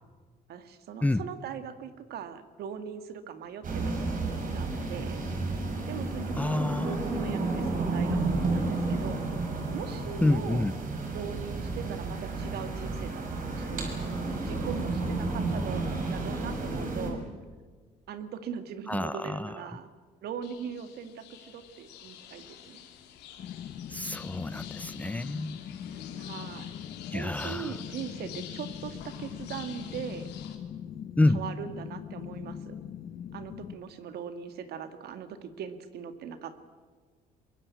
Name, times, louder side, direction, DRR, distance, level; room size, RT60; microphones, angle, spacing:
voice 1, 0.5-4.0 4.5-5.2 5.9-9.2 9.7-10.7 11.1-15.8 16.1-17.2 18.1-19.9 20.2-22.8 26.2-26.7 27.1-30.3 31.3-32.8 33.3-36.6, right 7 dB, 70° right, 10 dB, 2.0 m, -40 dB
sound 1, 3.6-17.1, right 3 dB, 55° right, 5.9 m, -31 dB
voice 2, 6.4-7.0 10.2-10.7 18.9-19.6 23.9-25.6 27.1-27.8 31.2-31.4, left 2 dB, 10° left, 16 dB, 0.6 m, -28 dB
sound 2, 20.4-30.5, left 10 dB, 85° left, 3.1 m, -48 dB
sound 3, 23.4-33.8, left 9 dB, 55° left, 1.4 m, -41 dB
23.0 x 22.0 x 8.6 m, 1.5 s
cardioid pair, 110°, 17 cm